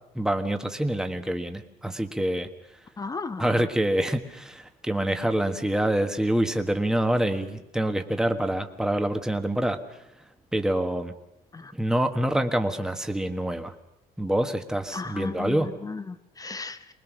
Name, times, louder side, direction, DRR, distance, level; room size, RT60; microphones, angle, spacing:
voice 1, 0.1-2.5 3.4-10.0 10.5-11.1 11.7-13.7 14.2-15.7, right 1 dB, 5° right, 6 dB, 1.4 m, -26 dB
voice 2, 3.0-3.7 11.5-11.7 14.9-16.9, left 4 dB, 20° left, 11 dB, 0.8 m, -35 dB
23.5 x 20.0 x 6.2 m, 0.92 s
cardioid pair, 110°, 17 cm